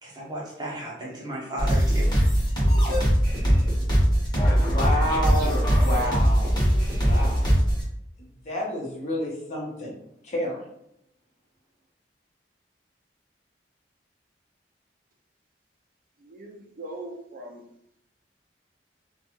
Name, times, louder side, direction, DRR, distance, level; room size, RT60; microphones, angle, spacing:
voice 1, 0.0-2.1, right 1 dB, 25° right, -4 dB, 0.8 m, -34 dB
sound 1, 1.6-7.8, equal, 25° left, 1.1 m, -21 dB
voice 2, 4.5-7.5 8.2-10.0 10.2-10.6, left 1 dB, 40° left, -3 dB, 0.8 m, -30 dB
voice 3, 16.2-17.6, right 1 dB, 50° right, 2 dB, 0.4 m, -40 dB
2.6 x 2.3 x 2.9 m, 0.75 s
head